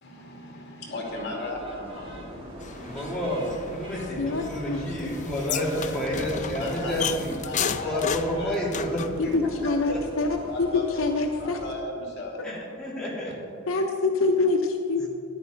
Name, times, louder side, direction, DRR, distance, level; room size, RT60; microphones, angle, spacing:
voice 1, 0.0-2.2 5.7-5.9 6.5-8.6 9.2-9.3 10.4-11.0 11.4-12.4, left 1 dB, 55° left, -1 dB, 2.4 m, -36 dB
sound 1, 1.0-11.7, equal, 25° right, 2.1 m, -43 dB
sound 2, 1.8-8.4, equal, 75° right, 3.0 m, -45 dB
sound 3, 2.6-9.2, left 7 dB, 35° left, 0.4 m, -34 dB
voice 2, 2.8-10.2 12.4-13.3, equal, 5° left, -7 dB, 3.0 m, -30 dB
voice 3, 4.2-5.2 9.3-10.7 11.0-11.6 13.7-15.1, left 3 dB, 80° left, 3 dB, 0.8 m, -26 dB
13.0 x 11.0 x 4.0 m, 2.4 s
head